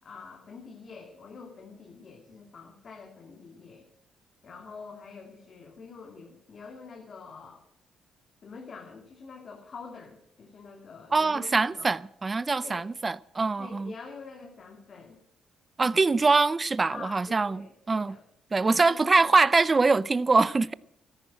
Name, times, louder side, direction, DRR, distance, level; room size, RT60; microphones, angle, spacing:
voice 1, 0.0-3.9 4.4-7.6 8.4-11.9 12.6-12.8 13.6-15.2 15.8-16.3 16.9-18.2 18.6-19.1, left 5 dB, 50° left, 2.5 m, -46 dB
voice 2, 11.1-13.9 15.8-18.2 18.5-20.7, right 3 dB, 25° right, 0.5 m, -23 dB
14.0 x 11.0 x 7.4 m
cardioid pair, 90°, 0 cm